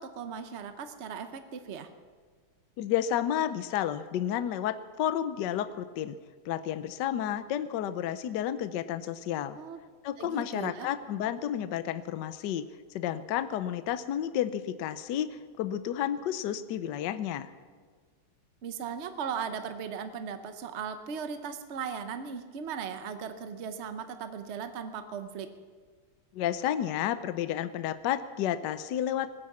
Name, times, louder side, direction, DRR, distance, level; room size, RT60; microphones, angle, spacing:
voice 1, 0.0-1.9 9.5-9.8 10.2-10.9 18.6-25.5, right 7 dB, 65° right, 8 dB, 0.6 m, -38 dB
voice 2, 2.8-6.2 6.4-9.6 10.0-12.6 12.9-17.5 26.3-29.4, left 10 dB, 70° left, 12 dB, 1.2 m, -31 dB
20.0 x 10.0 x 7.2 m, 1.5 s
omnidirectional pair, 2.3 m